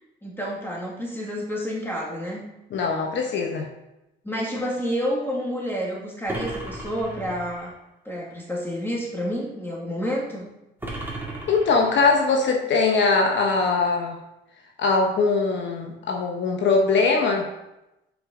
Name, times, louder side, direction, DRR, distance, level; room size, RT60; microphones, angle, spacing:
voice 1, 0.2-2.4 4.2-7.7 8.1-10.4, equal, 10° left, -3 dB, 2.1 m, -29 dB
voice 2, 2.7-3.7 11.5-14.2 14.8-17.5, left 4 dB, 65° left, 2 dB, 1.0 m, -21 dB
sound 1, 6.3-7.7 10.8-12.3, right 1 dB, 10° right, 1.8 m, -35 dB
7.2 x 4.8 x 3.8 m, 0.92 s
cardioid pair, 90°, 20 cm